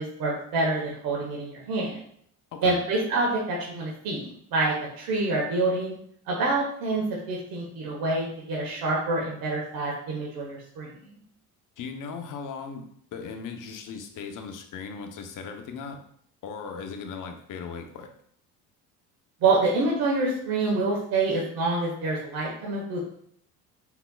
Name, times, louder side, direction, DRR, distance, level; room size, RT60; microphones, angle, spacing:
voice 1, 0.0-2.0 2.6-5.9 6.3-11.1 19.4-23.0, right 3 dB, 60° right, -2 dB, 1.2 m, -27 dB
voice 2, 11.8-12.8 13.1-16.0 16.4-18.1, left 5 dB, 50° left, 5 dB, 0.9 m, -37 dB
4.5 x 3.9 x 2.3 m, 0.65 s
hypercardioid pair, 70°, 40 cm